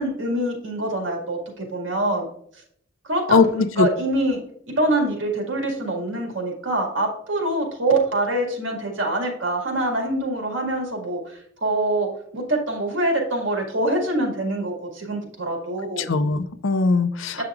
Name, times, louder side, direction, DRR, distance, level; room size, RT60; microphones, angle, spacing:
voice 1, 0.0-2.2 3.0-4.4 4.8-16.1 17.4-17.5, right 1 dB, 65° right, 1 dB, 2.0 m, -25 dB
voice 2, 3.3-3.9 16.0-17.5, left 3 dB, 70° left, 11 dB, 0.6 m, -20 dB
8.2 x 5.8 x 2.5 m, 0.64 s
head